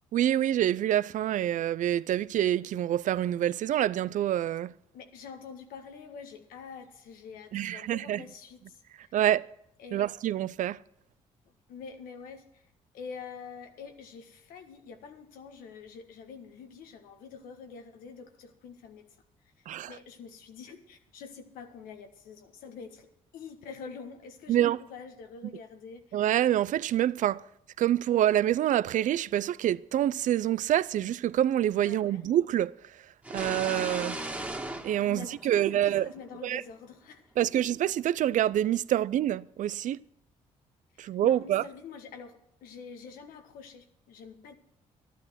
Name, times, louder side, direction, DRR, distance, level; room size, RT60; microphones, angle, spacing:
voice 1, 0.1-4.7 7.5-8.2 9.1-9.5 9.9-10.8 19.7-19.9 24.5-24.8 26.1-27.4 27.8-32.7 33.3-34.2 34.8-36.1 36.4-36.6 37.4-40.0 41.0-41.6, right 12 dB, 65° right, 0.5 m, -26 dB
voice 2, 4.9-9.2 9.8-10.1 11.7-12.6 12.9-19.1 19.6-23.1 23.3-26.2 31.8-32.2 33.4-34.6 35.0-37.6 40.9-44.6, left 5 dB, 85° left, 1.5 m, -46 dB
sound 1, 33.2-36.0, right 1 dB, 10° right, 1.9 m, -37 dB
12.5 x 11.0 x 5.9 m
supercardioid pair, 60°, 14 cm